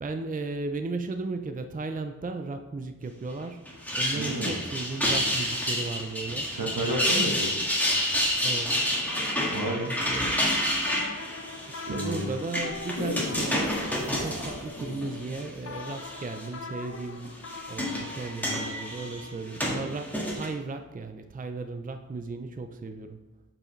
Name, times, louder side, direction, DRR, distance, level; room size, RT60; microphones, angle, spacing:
voice 1, 0.0-3.6 3.9-6.5 8.4-8.8 10.1-10.6 11.7-17.4 17.7-23.2, right 3 dB, 25° right, 7 dB, 0.4 m, -35 dB
sound 1, 3.7-15.4 15.8-16.4 17.3-20.5, equal, 5° left, 1.6 m, -29 dB
voice 2, 4.1-4.6 6.5-7.7 9.5-9.9 11.8-12.3, right 1 dB, 75° right, 0 dB, 1.3 m, -31 dB
sound 2, 8.9-17.8, left 3 dB, 45° left, 0.6 m, -43 dB
sound 3, 12.9-17.2 17.8-17.9, left 3 dB, 85° left, 1.3 m, -38 dB
7.4 x 5.0 x 3.1 m, 1.2 s
wide cardioid pair, 55°, 33 cm